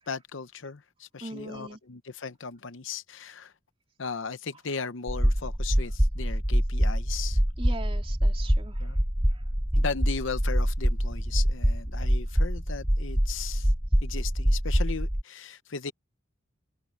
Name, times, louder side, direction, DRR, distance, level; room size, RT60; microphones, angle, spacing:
voice 1, 0.1-3.5 4.0-7.4 8.8-9.0 9.7-13.7 14.0-15.9, left 5 dB, 65° left, 0.8 m, -37 dB
voice 2, 1.2-1.8 7.6-8.9 9.3-9.4, right 2 dB, 30° right, 3.3 m, -40 dB
sound 1, 5.1-15.2, equal, 5° right, 0.5 m, -25 dB
head